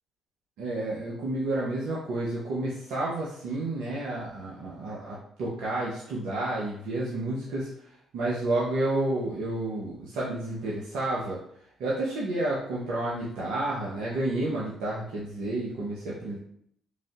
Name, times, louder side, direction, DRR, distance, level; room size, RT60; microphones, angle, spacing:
voice 1, 0.6-7.7 8.1-11.4 11.8-16.4, right 2 dB, 80° right, -6 dB, 0.7 m, -30 dB
3.3 x 2.6 x 2.4 m, 0.69 s
supercardioid pair, 55°, 0 cm